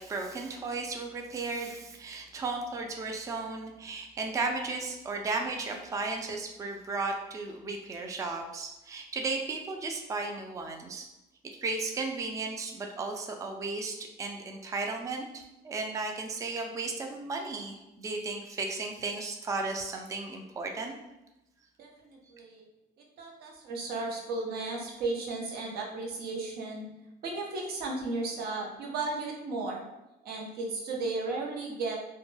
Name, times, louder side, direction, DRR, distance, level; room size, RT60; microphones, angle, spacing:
voice 1, 0.0-11.1 11.6-21.0, right 3 dB, 20° right, 3 dB, 0.3 m, -35 dB
voice 2, 21.8-22.7 23.2-26.9 27.2-29.8 30.2-32.0, right 3 dB, 65° right, -1 dB, 0.7 m, -34 dB
2.2 x 2.1 x 3.1 m, 0.94 s
cardioid pair, 110°, 17 cm